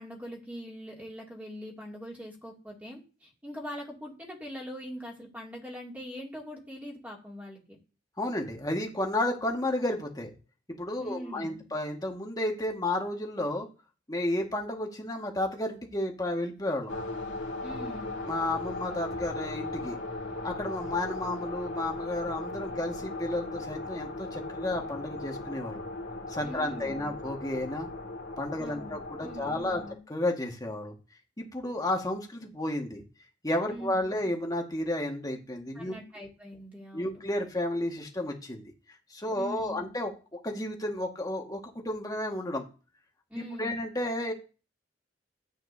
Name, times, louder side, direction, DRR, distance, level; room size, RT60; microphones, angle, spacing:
voice 1, 0.0-7.8 11.0-11.7 17.6-18.2 26.4-27.2 28.6-30.0 33.7-34.3 35.7-37.2 39.3-39.9 43.3-43.8, equal, 10° right, -3 dB, 2.6 m, -42 dB
voice 2, 8.2-10.3 10.7-13.7 14.1-17.0 18.2-20.0 20.4-25.8 26.3-27.9 28.4-29.8 30.1-31.0 31.4-33.0 33.4-35.9 36.9-38.6 39.1-40.1 40.4-42.6 43.3-44.3, left 1 dB, 20° left, 1 dB, 1.8 m, -32 dB
sound 1, 16.9-29.9, left 2 dB, 75° left, 2.2 m, -38 dB
13.0 x 8.9 x 2.8 m, 0.34 s
head